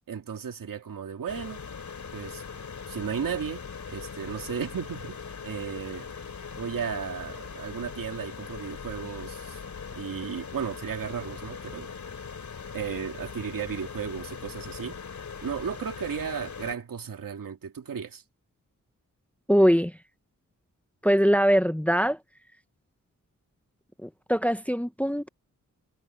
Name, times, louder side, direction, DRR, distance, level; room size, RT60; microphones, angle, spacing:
voice 1, 0.1-1.6 2.1-2.4 2.9-3.6 3.9-5.2 5.4-6.1 6.6-9.6 10.0-11.9 12.7-15.0 15.4-18.2, right 7 dB, 90° right, 2.5 m, -34 dB
sound 1, 1.3-16.8, left 6 dB, 60° left, 3.0 m, -40 dB
voice 2, 19.5-19.9 21.0-22.2 24.0-25.3, equal, 5° left, 0.9 m, -22 dB
wide cardioid pair, 90°, 32 cm